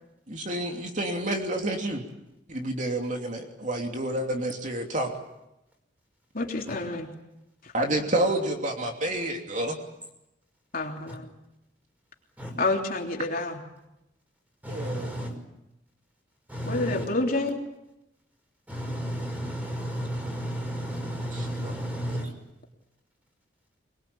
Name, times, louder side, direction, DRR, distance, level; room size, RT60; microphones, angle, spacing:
voice 1, 0.3-2.0 2.5-5.1 7.7-9.8 14.7-15.1 21.3-21.7, right 1 dB, 40° right, 2 dB, 3.0 m, -29 dB
voice 2, 6.3-7.1 7.6-8.1 10.7-11.3 12.6-13.6 16.7-17.6, left 2 dB, 50° left, 1 dB, 3.4 m, -29 dB
voice 3, 14.6-15.3 16.5-17.1 18.7-22.3, equal, 10° right, 3 dB, 5.5 m, -33 dB
24.5 x 21.5 x 8.7 m, 0.89 s
head